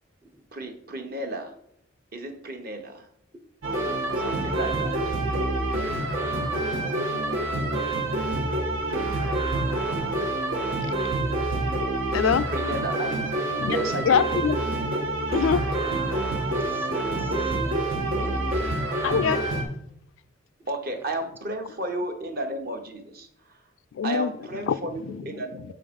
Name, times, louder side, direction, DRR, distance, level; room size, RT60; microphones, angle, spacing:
voice 1, 0.5-1.5 2.1-3.1 4.2-5.0 12.5-13.2 13.6-14.5 20.7-23.6 24.0-25.6, right 1 dB, 45° right, 0.9 m, -33 dB
sound 1, 3.6-19.6, right 2 dB, 80° right, 1.3 m, -27 dB
voice 2, 12.1-12.5 13.6-13.8 14.1-14.6 15.3-15.7 19.0-19.5 23.9-24.3 24.7-24.8 25.1-25.2, left 7 dB, 70° left, 0.3 m, -23 dB
voice 3, 16.5-17.6 18.2-18.6, right 1 dB, 10° right, 0.5 m, -47 dB
6.8 x 3.8 x 5.1 m
head